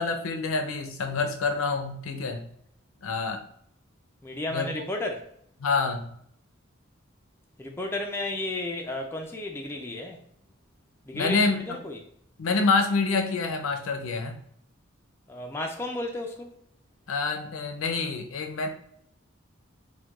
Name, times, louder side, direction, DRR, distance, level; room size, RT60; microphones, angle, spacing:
voice 1, 0.0-2.5 3.0-3.4 4.5-4.8 5.6-6.1 11.1-11.8 12.4-14.4 17.1-18.7, left 4 dB, 85° left, 0.5 m, -27 dB
voice 2, 4.2-5.2 7.6-10.2 11.1-12.0 15.3-16.5, left 2 dB, 10° left, 0.3 m, -33 dB
4.4 x 2.2 x 2.3 m
head